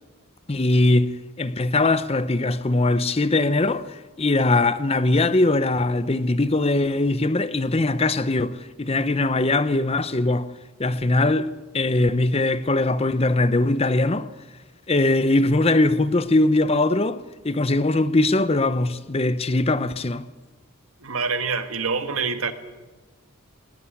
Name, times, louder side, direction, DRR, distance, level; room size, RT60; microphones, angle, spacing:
voice 1, 0.5-1.1 1.4-10.5 10.8-11.5 11.7-14.3 14.9-17.2 17.4-20.3, left 2 dB, 30° left, 0.7 m, -21 dB
voice 2, 21.0-22.5, right 5 dB, 80° right, 1.8 m, -26 dB
20.0 x 19.5 x 8.5 m
head